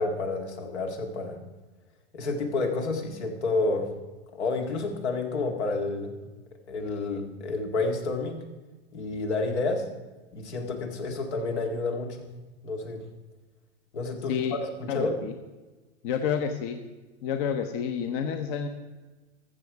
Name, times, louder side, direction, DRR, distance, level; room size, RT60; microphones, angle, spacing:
voice 1, 0.0-1.4 2.1-3.9 4.3-6.2 6.7-8.4 8.9-9.9 10.3-12.3 12.6-13.0 13.9-15.2, left 3 dB, 80° left, 3 dB, 2.0 m, -30 dB
voice 2, 14.9-15.3 16.0-16.8 17.2-18.7, left 7 dB, 50° left, 6 dB, 1.0 m, -29 dB
14.0 x 7.1 x 4.8 m, 1.2 s
hypercardioid pair, 115°, 33 cm